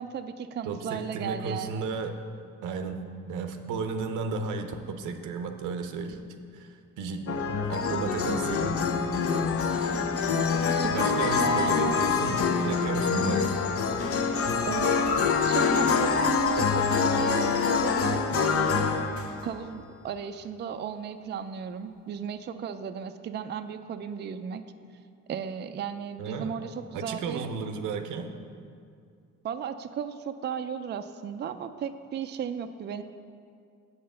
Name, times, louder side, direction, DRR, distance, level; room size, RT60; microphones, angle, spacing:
voice 1, 0.0-1.9 10.7-12.0 14.7-18.9 19.4-24.6 25.3-27.5 29.4-33.0, right 7 dB, 35° right, 8 dB, 0.4 m, -35 dB
voice 2, 0.6-2.1 2.6-6.2 6.5-7.4 7.7-8.8 10.9-13.6 26.2-26.6 26.9-28.3, right 4 dB, 90° right, 6 dB, 0.7 m, -33 dB
sound 1, 7.3-19.5, left 5 dB, 50° left, 0.7 m, -25 dB
7.8 x 5.6 x 6.6 m, 2.3 s
cardioid pair, 90°, 30 cm